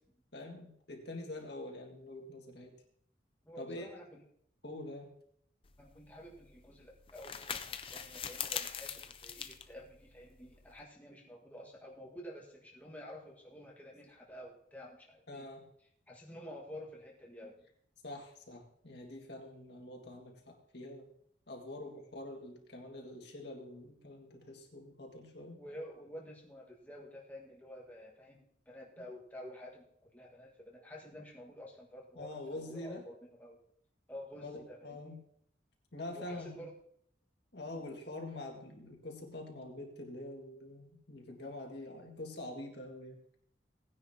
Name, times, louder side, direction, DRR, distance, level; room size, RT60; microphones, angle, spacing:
voice 1, 0.3-2.7 3.6-3.9 4.6-5.1 15.3-15.6 18.0-21.1 21.5-25.6 32.2-33.0 34.4-35.2 35.9-36.6 37.5-43.2, left 1 dB, 60° left, 1 dB, 2.0 m, -45 dB
voice 2, 3.4-4.2 5.8-15.4 16.1-17.6 25.6-33.6 34.1-35.1 36.1-36.8 41.4-41.5, equal, 10° left, -3 dB, 1.7 m, -50 dB
sound 1, 5.6-10.8, left 7 dB, 30° left, 0.5 m, -43 dB
18.0 x 9.9 x 2.9 m, 0.67 s
head